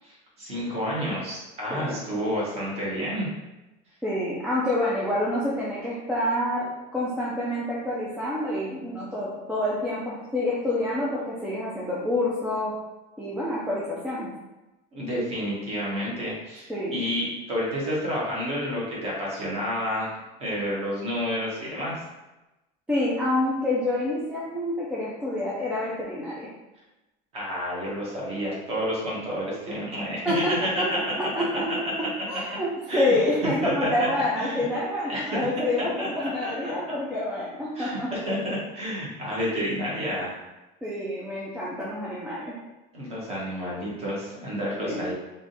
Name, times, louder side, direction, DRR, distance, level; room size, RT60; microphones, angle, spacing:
voice 1, 0.0-3.3 14.9-22.0 27.3-31.8 32.9-33.2 33.4-33.9 34.4-34.6 35.0-35.5 35.8-36.7 37.7-40.4 42.9-45.1, equal, 30° right, -5 dB, 1.2 m, -30 dB
voice 2, 4.0-6.7 6.9-12.7 13.2-14.3 16.7-17.0 22.9-26.4 30.2-31.0 31.4-31.7 32.3-38.1 40.8-42.5 44.8-45.0, left 1 dB, 5° right, -7 dB, 0.4 m, -27 dB
3.5 x 2.6 x 4.0 m, 1.0 s
cardioid pair, 170°, 21 cm